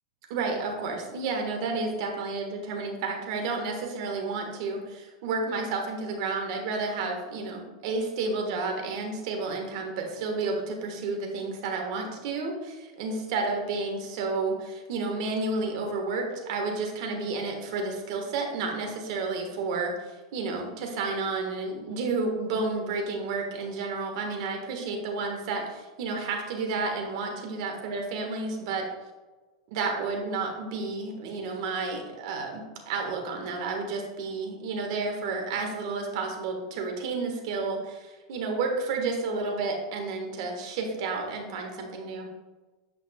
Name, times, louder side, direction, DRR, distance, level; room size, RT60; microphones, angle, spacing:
voice 1, 0.3-19.9 20.3-28.9 29.7-42.3, right 3 dB, 60° right, 2 dB, 1.5 m, -31 dB
8.3 x 5.7 x 2.4 m, 1.2 s
supercardioid pair, 135°, 3 cm